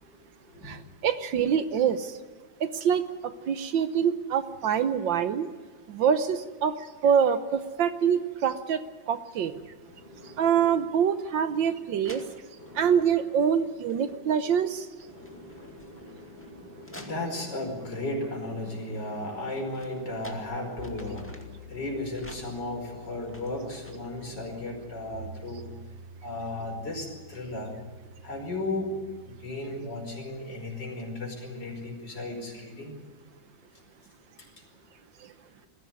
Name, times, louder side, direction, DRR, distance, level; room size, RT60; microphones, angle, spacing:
voice 1, 0.0-0.8 9.9-10.7 12.1-12.2 12.5-13.1 14.1-14.6 15.0-25.7 26.2-27.8 28.2-29.0 29.2-33.0 34.4-34.5, left 2 dB, 55° left, 1 dB, 5.8 m, -36 dB
voice 2, 0.6-2.2 2.6-5.5 5.9-9.5 10.4-12.2 12.7-14.9, right 7 dB, 70° right, 11 dB, 1.6 m, -25 dB
sound 1, 11.6-11.7 12.0-13.0 13.7-14.2 14.5-17.7 19.2-21.7 22.1-24.2, left 1 dB, 5° left, 2.0 m, -51 dB
sound 2, 20.8-29.5, left 1 dB, 40° right, 2.2 m, -48 dB
21.5 x 15.5 x 9.5 m, 1.5 s
omnidirectional pair, 2.2 m